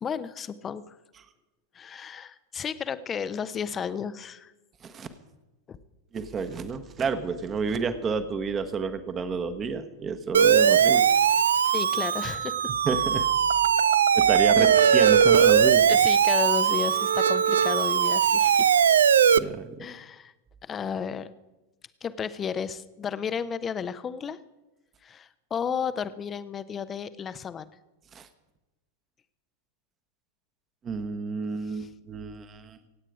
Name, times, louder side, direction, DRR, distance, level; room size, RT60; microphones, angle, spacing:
voice 1, 0.0-0.9 1.7-4.5 5.7-5.8 11.7-12.7 14.6-14.7 15.9-18.7 19.8-20.3 20.6-21.3 22.0-24.4 25.0-27.6 31.7-31.9, left 7 dB, 25° left, 14 dB, 0.8 m, -33 dB
voice 2, 6.1-11.0 12.8-13.3 14.1-15.9 19.4-19.9 28.1-28.3 30.8-32.8, right 5 dB, 25° right, 10 dB, 1.3 m, -30 dB
Siren, 10.3-19.4, right 8 dB, 65° right, 0.4 m, -20 dB
26.0 x 9.0 x 4.9 m, 1.1 s
figure-of-eight pair, 90°, 0 cm